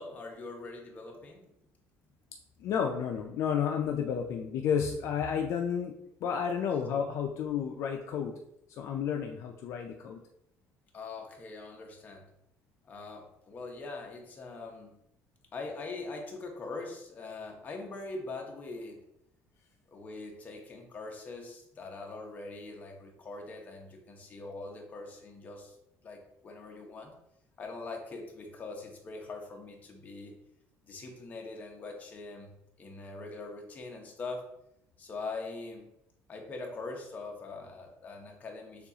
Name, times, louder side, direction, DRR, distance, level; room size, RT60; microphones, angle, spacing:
voice 1, 0.0-1.5 10.9-12.3 12.8-15.0 15.5-19.0 19.9-25.8 26.0-27.2 27.6-30.4 30.8-32.5 32.8-34.5 35.0-35.9 36.3-38.9, left 3 dB, 25° left, 1 dB, 0.8 m, -42 dB
voice 2, 2.6-5.9 6.2-8.3 8.7-10.2, left 7 dB, 55° left, 3 dB, 0.4 m, -31 dB
6.6 x 2.4 x 2.8 m, 0.80 s
cardioid pair, 165°, 6 cm